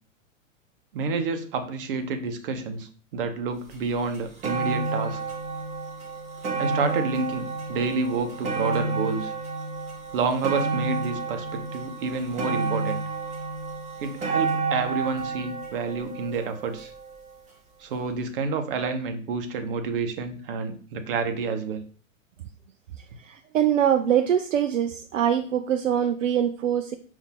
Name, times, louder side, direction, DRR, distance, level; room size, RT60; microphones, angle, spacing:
voice 1, 0.9-5.2 6.6-9.3 10.1-13.0 14.0-16.9 17.8-21.8, right 4 dB, 40° right, 6 dB, 0.8 m, -29 dB
sound 1, 3.7-3.8 4.1-17.3 18.1-18.2, right 4 dB, 15° right, 1.0 m, -30 dB
voice 2, 22.9-27.0, right 9 dB, 65° right, 6 dB, 0.5 m, -24 dB
5.4 x 2.6 x 3.7 m, 0.42 s
figure-of-eight pair, 105°, 40 cm